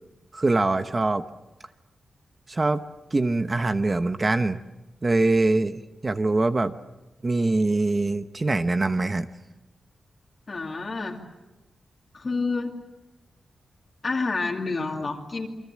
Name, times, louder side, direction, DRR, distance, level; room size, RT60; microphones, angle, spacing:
voice 1, 0.3-1.2 2.5-2.8 3.1-4.6 5.0-6.7 7.2-9.3, right 2 dB, 25° right, 9 dB, 0.9 m, -23 dB
voice 2, 10.5-11.2 12.1-12.7 14.0-15.5, left 3 dB, 35° left, 0 dB, 2.6 m, -28 dB
29.0 x 24.5 x 7.5 m, 1.0 s
wide cardioid pair, 150°, 0 cm